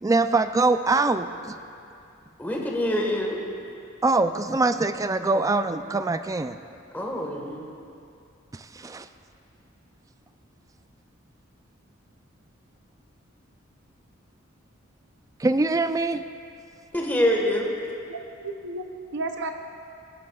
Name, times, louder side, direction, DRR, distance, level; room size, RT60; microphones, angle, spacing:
voice 1, 0.0-1.6 4.0-6.6 8.7-9.1 15.4-16.2, right 3 dB, 15° right, 10 dB, 0.3 m, -23 dB
voice 2, 2.4-3.4 6.9-7.7 16.9-17.7, left 1 dB, 10° left, -2 dB, 1.4 m, -25 dB
voice 3, 18.1-19.5, right 2 dB, 60° right, 5 dB, 0.6 m, -33 dB
20.5 x 11.5 x 2.3 m, 2.5 s
head